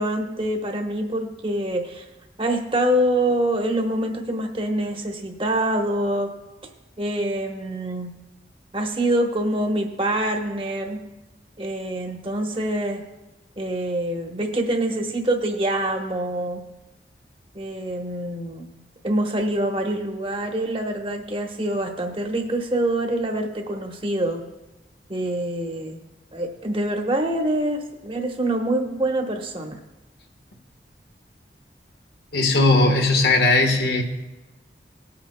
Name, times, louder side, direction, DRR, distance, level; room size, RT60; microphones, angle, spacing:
voice 1, 0.0-2.0 2.4-6.3 7.0-8.1 8.7-11.0 11.6-13.0 13.6-16.6 17.5-18.7 19.0-24.4 25.1-26.0 26.3-29.8, right 1 dB, 30° right, 3 dB, 1.1 m, -25 dB
voice 2, 32.3-34.0, left 2 dB, 70° left, 3 dB, 1.3 m, -18 dB
19.5 x 8.7 x 2.2 m, 1.1 s
head